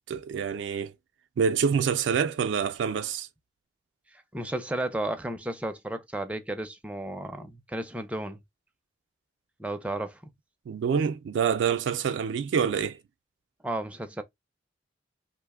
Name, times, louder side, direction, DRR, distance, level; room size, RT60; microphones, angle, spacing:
voice 1, 0.1-0.9 1.4-3.3 10.7-13.0, right 7 dB, 85° right, 0.3 m, -26 dB
voice 2, 4.1-8.4 9.6-10.3 13.6-14.2, right 1 dB, 5° right, 0.4 m, -33 dB
2.9 x 2.0 x 3.4 m
head